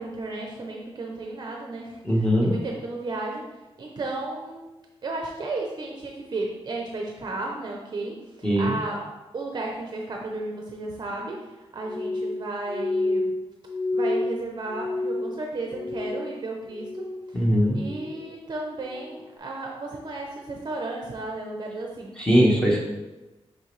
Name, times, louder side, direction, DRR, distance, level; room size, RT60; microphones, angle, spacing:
voice 1, 0.0-2.0 2.4-3.5 3.8-4.7 5.0-9.0 9.3-13.3 13.9-17.4 17.7-22.2, right 2 dB, 40° right, 0 dB, 0.6 m, -34 dB
voice 2, 2.0-2.5 8.4-8.7 17.3-17.8 22.2-22.8, equal, 10° left, -4 dB, 1.0 m, -20 dB
Glass, 11.9-16.4 16.7-17.4 17.8-18.3 18.9-19.2, left 2 dB, 65° left, 1.1 m, -30 dB
6.5 x 5.0 x 3.2 m, 1.1 s
wide cardioid pair, 180°, 11 cm